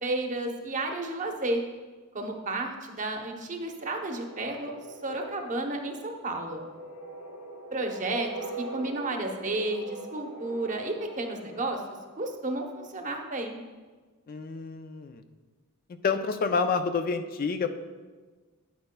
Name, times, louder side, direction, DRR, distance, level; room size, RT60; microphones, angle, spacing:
voice 1, 0.0-1.6 2.1-4.7 5.0-6.6 7.7-8.3 8.6-11.8 12.2-13.6, right 2 dB, 35° right, 3 dB, 0.8 m, -32 dB
sound 1, 4.1-12.7, right 1 dB, 80° left, 0.7 m, -42 dB
voice 2, 14.3-15.2 16.0-17.7, left 5 dB, 40° left, 8 dB, 0.4 m, -28 dB
9.3 x 8.9 x 2.2 m, 1.4 s
head